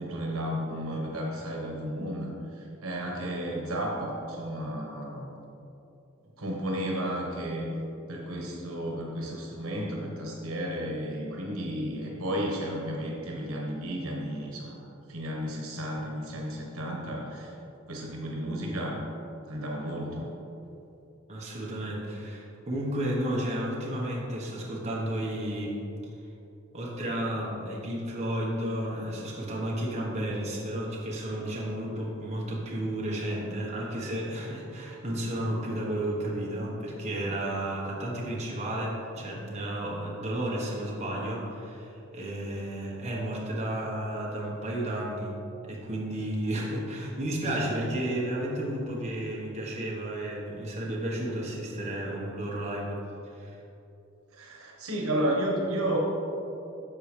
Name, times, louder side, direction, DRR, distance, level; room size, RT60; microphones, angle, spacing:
voice 1, 0.0-5.3 6.4-7.7 8.1-17.5 17.9-19.0 19.5-20.3 54.3-56.0, right 1 dB, 85° right, -1 dB, 1.3 m, -33 dB
voice 2, 21.3-25.8 26.7-45.4 45.6-53.0 53.3-53.6, right 1 dB, 35° right, -4 dB, 1.3 m, -32 dB
12.5 x 4.6 x 3.4 m, 2.8 s
head